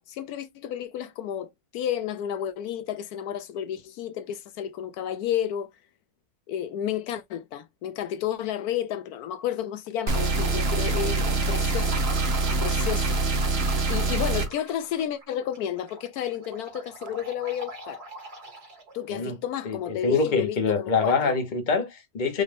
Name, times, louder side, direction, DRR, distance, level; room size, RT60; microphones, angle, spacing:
voice 1, 0.0-5.7 6.5-12.1 12.6-13.2 13.5-13.6 13.9-18.0 18.9-21.3, left 10 dB, 80° left, 1.1 m, -31 dB
sound 1, 10.1-14.5, right 2 dB, 45° right, 1.1 m, -24 dB
sound 2, 11.8-19.1, right 2 dB, 90° right, 2.7 m, -43 dB
voice 2, 19.6-22.4, left 4 dB, 35° left, 1.1 m, -25 dB
5.2 x 2.4 x 3.3 m
omnidirectional pair, 1.6 m